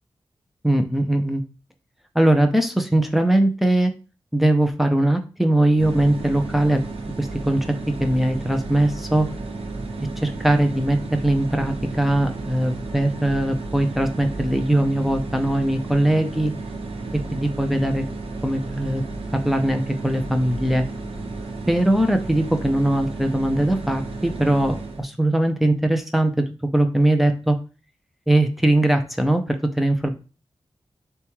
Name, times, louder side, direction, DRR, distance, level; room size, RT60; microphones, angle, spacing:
voice 1, 0.6-1.4 2.1-3.9 4.3-6.8 7.2-7.6 8.0-9.3 10.2-11.0 11.2-16.5 17.3-18.0 18.4-19.0 19.3-20.8 21.7-26.4 26.7-27.6 28.3-29.4 29.8-30.2, right 1 dB, ahead, 5 dB, 0.5 m, -20 dB
sound 1, 5.8-25.1, right 3 dB, 85° right, 0.8 m, -33 dB
6.7 x 2.3 x 3.1 m, 0.33 s
wide cardioid pair, 140°, 9 cm